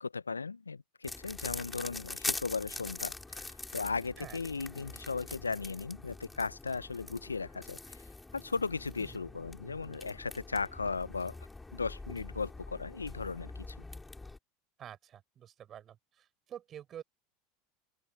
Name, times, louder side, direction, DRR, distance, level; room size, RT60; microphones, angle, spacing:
voice 1, 0.0-8.0 8.3-11.4 11.7-13.7, left 4 dB, 85° left, 0.9 m, -37 dB
sound 1, 1.0-14.4, left 3 dB, 10° left, 5.7 m, -44 dB
voice 2, 14.8-17.0, right 10 dB, 35° right, 6.5 m, -48 dB
open air
figure-of-eight pair, 80°, 0 cm